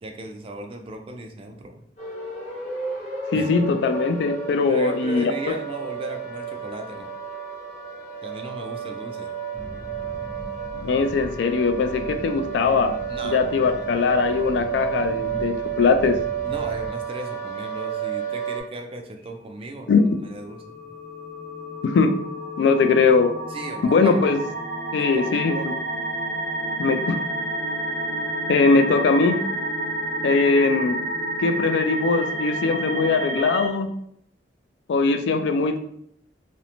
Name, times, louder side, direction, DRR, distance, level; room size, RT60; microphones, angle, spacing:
voice 1, 0.0-1.8 3.3-3.6 4.7-7.1 8.2-9.3 13.1-13.9 16.4-20.9 23.5-24.4 25.0-25.7, right 2 dB, 30° right, 4 dB, 0.3 m, -36 dB
sound 1, 2.0-18.6, right 7 dB, 40° left, 1.0 m, -31 dB
voice 2, 3.3-5.3 10.7-12.9 13.3-16.2 19.9-20.0 21.8-22.1 22.6-23.3 23.8-24.4 24.9-25.7 26.8-27.2 28.5-29.4 30.2-31.0 31.4-33.9 34.9-35.8, left 4 dB, 70° left, 8 dB, 0.3 m, -20 dB
sound 2, 9.5-16.9, equal, 10° right, 0.8 m, -39 dB
sound 3, 20.4-33.7, right 1 dB, 60° right, 0.8 m, -30 dB
2.5 x 2.1 x 2.9 m, 0.69 s
head